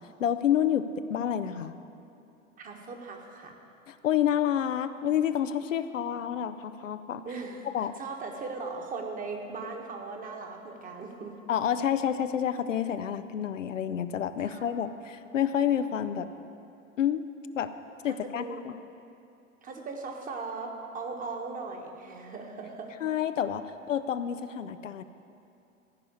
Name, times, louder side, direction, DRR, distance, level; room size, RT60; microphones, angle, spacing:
voice 1, 0.0-1.7 3.9-7.2 7.6-7.9 11.5-16.3 17.0-17.2 17.6-17.7 18.0-18.7 23.0-25.0, left 9 dB, 70° left, 10 dB, 0.6 m, -29 dB
voice 2, 2.6-3.5 7.2-11.4 14.4-14.7 18.0-18.6 19.6-23.0, right 4 dB, 20° right, 2 dB, 1.3 m, -39 dB
14.5 x 5.5 x 8.5 m, 2.6 s
figure-of-eight pair, 90°, 39 cm